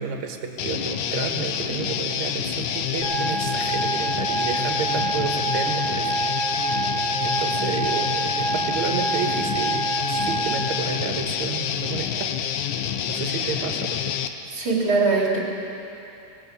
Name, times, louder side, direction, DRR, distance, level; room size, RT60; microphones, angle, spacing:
voice 1, 0.0-6.1 6.6-7.0 7.2-12.5 13.1-14.1, right 6 dB, 60° right, 3 dB, 2.7 m, -31 dB
Guitar, 0.6-14.3, left 9 dB, 75° left, 2.1 m, -27 dB
sound 1, 3.0-10.6, right 3 dB, 15° right, 7.3 m, -27 dB
voice 2, 14.5-15.4, right 3 dB, 35° right, -3 dB, 4.3 m, -22 dB
19.5 x 16.5 x 8.5 m, 2.7 s
omnidirectional pair, 3.8 m